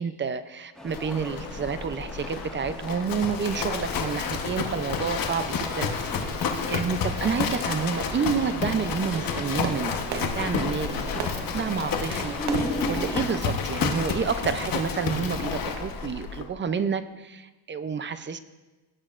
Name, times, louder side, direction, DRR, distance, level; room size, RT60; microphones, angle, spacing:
voice 1, 0.0-11.1 11.5-12.4 12.6-18.4, right 6 dB, 25° right, 11 dB, 0.5 m, -29 dB
sound 1, 0.7-13.5, right 1 dB, ahead, 1.6 m, -38 dB
Livestock farm animals working animals, 0.9-16.4, left 5 dB, 50° left, 1.1 m, -30 dB
Fireworks, 9.0-14.0, right 5 dB, 65° right, 1.1 m, -38 dB
17.5 x 8.7 x 2.5 m, 1.1 s
cardioid pair, 125°, 43 cm